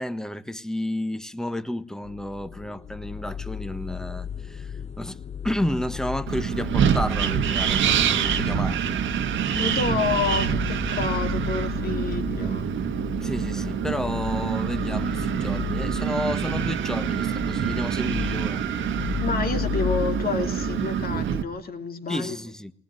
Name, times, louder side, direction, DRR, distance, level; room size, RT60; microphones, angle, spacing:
voice 1, 0.0-9.0 13.2-18.6 22.1-22.7, left 1 dB, 5° left, 1.3 m, -31 dB
sound 1, 2.0-21.2, left 7 dB, 35° left, 1.2 m, -34 dB
Wind, 6.3-21.4, right 8 dB, 75° right, 1.5 m, -26 dB
voice 2, 9.5-12.7 19.2-22.4, left 4 dB, 50° left, 2.9 m, -29 dB
20.0 x 19.5 x 9.2 m
cardioid pair, 90°, 20 cm